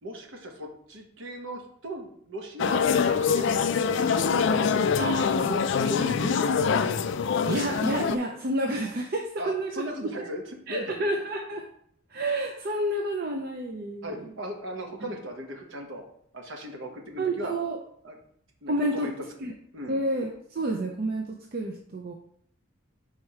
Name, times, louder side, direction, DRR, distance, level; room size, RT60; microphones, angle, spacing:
voice 1, 0.0-5.1 5.5-6.9 9.4-11.0 14.0-16.0 16.3-17.5 18.0-18.2 18.6-19.1 19.7-20.0, equal, 65° right, 2 dB, 1.1 m, -37 dB
sound 1, 2.6-8.2, left 6 dB, 60° left, 0.3 m, -24 dB
voice 2, 5.0-5.5 7.5-9.7 10.7-11.7 12.1-14.3 15.0-15.1 17.2-17.8 18.7-19.1 19.4-19.5 19.9-22.1, right 1 dB, 45° right, 2 dB, 0.5 m, -29 dB
4.7 x 4.3 x 4.7 m, 0.68 s
head